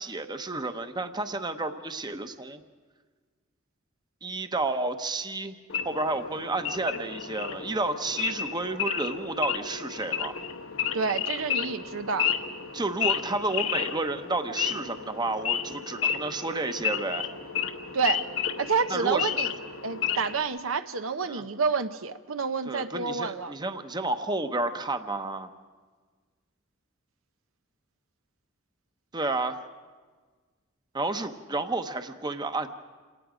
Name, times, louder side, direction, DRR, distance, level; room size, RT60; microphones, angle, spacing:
voice 1, 0.0-2.6 4.2-5.6 5.8-10.3 12.7-17.3 18.9-19.3 21.2-21.4 22.7-25.5 29.1-29.6 30.9-32.7, right 2 dB, 20° right, 8 dB, 0.9 m, -31 dB
Wild animals / Idling, 5.7-20.4, left 8 dB, 75° left, 1.2 m, -32 dB
voice 2, 10.9-12.3 17.9-18.2 18.6-19.5 19.8-23.5, right 5 dB, 80° right, 9 dB, 0.8 m, -28 dB
27.5 x 18.5 x 5.0 m, 1.4 s
head